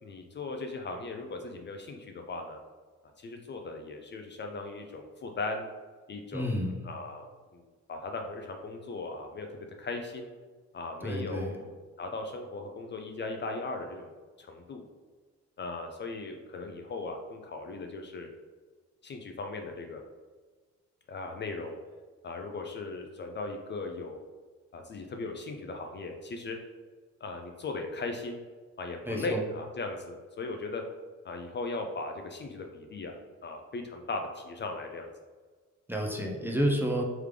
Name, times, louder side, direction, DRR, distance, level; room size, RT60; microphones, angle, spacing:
voice 1, 0.0-2.6 3.2-5.7 6.1-7.3 7.5-7.6 7.9-10.3 10.7-11.7 12.0-14.1 14.4-14.8 15.6-18.3 19.0-20.0 21.1-21.8 22.2-24.2 24.7-26.6 27.2-28.4 28.8-30.8 31.2-33.2 33.4-35.1, left 3 dB, 40° left, 3 dB, 0.4 m, -38 dB
voice 2, 6.3-6.8 11.0-11.6 29.1-29.4 35.9-37.0, equal, 5° right, 0 dB, 0.6 m, -30 dB
3.5 x 3.3 x 3.2 m, 1.4 s
cardioid pair, 90°, 30 cm